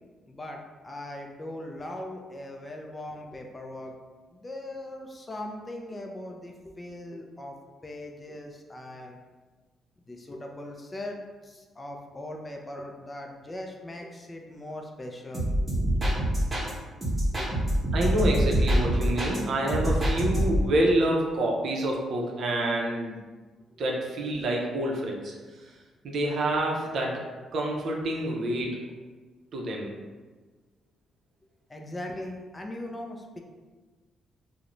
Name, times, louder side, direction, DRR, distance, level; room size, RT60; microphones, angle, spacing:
voice 1, 0.3-0.6 0.8-3.9 4.3-7.5 7.8-9.2 10.1-15.5 16.0-16.2 17.3-17.5 19.7-19.8 31.7-33.4, left 1 dB, 25° left, 2 dB, 0.3 m, -40 dB
sound 1, 15.3-16.7 17.0-19.4 19.7-20.7, right 1 dB, 25° right, 0.9 m, -25 dB
voice 2, 17.9-23.2 23.8-25.3 25.6-25.7 26.0-27.2 27.5-28.8 29.5-29.9, right 1 dB, 65° right, 0 dB, 0.5 m, -27 dB
2.4 x 2.0 x 3.0 m, 1.4 s
cardioid pair, 90°, 0 cm